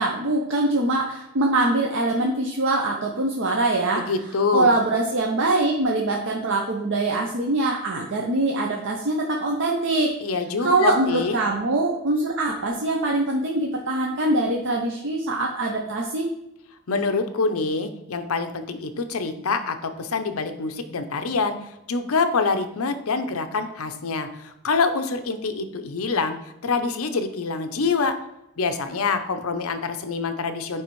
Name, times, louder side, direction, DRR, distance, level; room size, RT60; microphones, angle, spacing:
voice 1, 0.0-4.0 4.5-10.1 10.6-16.3, right 2 dB, 55° right, 0 dB, 0.7 m, -23 dB
voice 2, 3.9-4.7 10.2-11.4 16.9-21.6 21.9-26.4 26.6-28.1 28.6-30.8, left 4 dB, 70° left, 8 dB, 0.6 m, -25 dB
9.2 x 3.3 x 3.1 m, 0.87 s
head